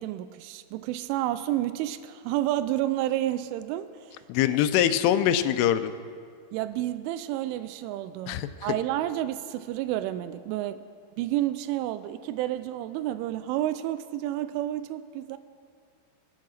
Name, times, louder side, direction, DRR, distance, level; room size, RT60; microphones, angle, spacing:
voice 1, 0.0-4.2 6.5-10.8 11.2-15.4, right 13 dB, 85° right, 11 dB, 3.0 m, -30 dB
voice 2, 4.3-5.9 8.3-8.5, left 11 dB, 85° left, 11 dB, 3.2 m, -23 dB
22.5 x 8.5 x 6.4 m, 2.1 s
omnidirectional pair, 5.6 m